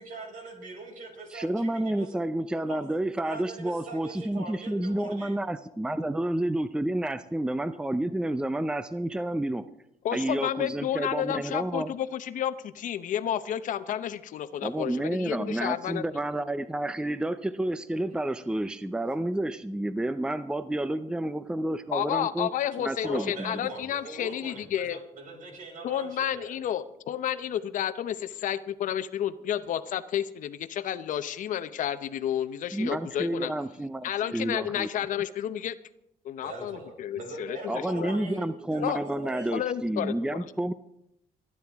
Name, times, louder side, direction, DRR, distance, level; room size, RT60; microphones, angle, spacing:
voice 1, 0.0-2.2 2.7-2.8 3.2-5.4 23.0-26.8 36.4-39.6, right 2 dB, 70° right, 1 dB, 5.9 m, -42 dB
voice 2, 1.3-9.6 10.1-11.9 14.6-22.5 22.8-23.7 32.7-34.9 37.7-40.7, right 1 dB, 5° right, 12 dB, 0.6 m, -30 dB
voice 3, 10.0-16.0 21.9-25.0 25.8-33.5 34.0-35.7 36.2-37.6 38.0-38.1 38.8-39.0 39.5-40.5, left 10 dB, 70° left, 13 dB, 0.8 m, -31 dB
29.5 x 9.9 x 3.6 m, 0.79 s
cardioid pair, 90°, 14 cm